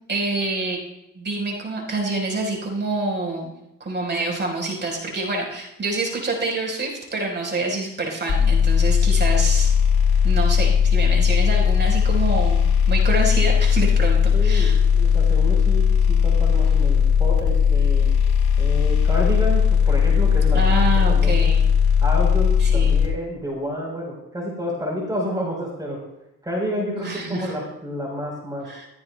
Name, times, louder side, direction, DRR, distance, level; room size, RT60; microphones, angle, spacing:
voice 1, 0.1-0.8 1.1-3.5 3.8-9.7 10.2-14.8 20.5-21.6 22.6-23.0 27.0-27.5 28.6-28.9, right 2 dB, 35° right, 0 dB, 4.7 m, -27 dB
sound 1, 8.3-23.1, left 7 dB, 50° left, 4.3 m, -18 dB
voice 2, 14.3-18.1 18.6-21.5 22.0-26.0 26.4-28.7, equal, 15° right, -1 dB, 4.4 m, -30 dB
15.5 x 15.0 x 2.3 m, 0.89 s
cardioid pair, 90°, 30 cm